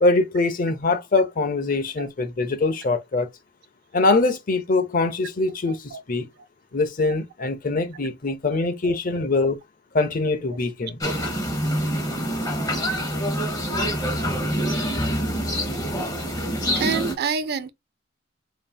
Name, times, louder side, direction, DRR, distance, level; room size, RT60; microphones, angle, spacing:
voice 1, 0.0-3.3 3.9-6.3 6.7-9.6 9.9-11.0, left 3 dB, 45° left, 0.6 m, -23 dB
voice 2, 5.7-6.0 8.8-9.0 16.7-17.7, right 6 dB, 55° right, 0.5 m, -27 dB
sound 1, 11.0-17.1, equal, 20° left, 1.4 m, -26 dB
5.2 x 2.7 x 2.3 m
head